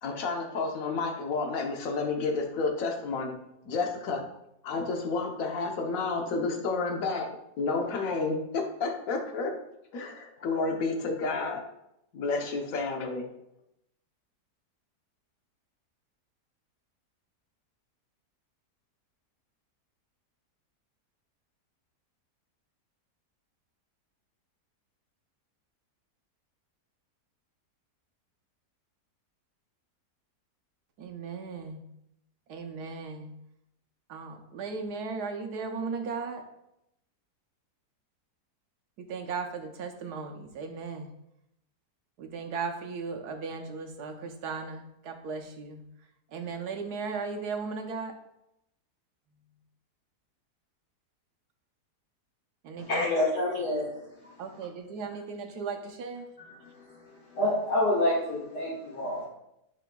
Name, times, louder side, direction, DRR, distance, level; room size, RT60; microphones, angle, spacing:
voice 1, 0.0-3.3 3.6-4.3 4.6-9.5 9.9-11.6 12.1-13.3, left 3 dB, 60° left, 3 dB, 1.3 m, -30 dB
voice 2, 31.0-31.8 32.5-33.3 34.1-36.5 39.0-41.1 42.2-45.8 46.3-48.2 52.6-53.2 53.5-53.6 54.4-56.3, right 4 dB, 75° right, 5 dB, 1.3 m, -36 dB
voice 3, 52.9-53.9 56.4-56.7 57.3-59.3, left 1 dB, 85° left, -8 dB, 2.4 m, -27 dB
10.5 x 4.9 x 2.3 m, 0.82 s
omnidirectional pair, 1.7 m